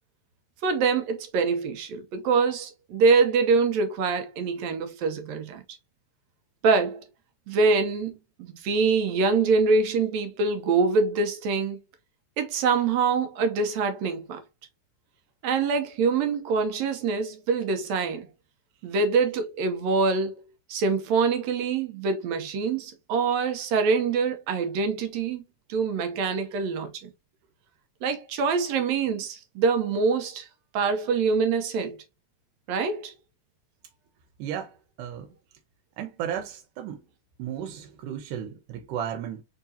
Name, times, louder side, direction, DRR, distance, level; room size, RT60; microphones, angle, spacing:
voice 1, 0.6-5.6 6.6-7.0 7.5-8.1 8.4-11.8 12.4-14.4 15.4-18.3 18.8-20.4 20.7-25.4 25.7-26.9 28.0-30.5 30.7-32.0 32.7-33.1, right 4 dB, 70° right, 1.8 m, -24 dB
voice 2, 34.4-35.3 36.0-37.0 37.4-39.4, right 9 dB, 85° right, 2.3 m, -34 dB
4.8 x 3.6 x 2.7 m
omnidirectional pair, 3.6 m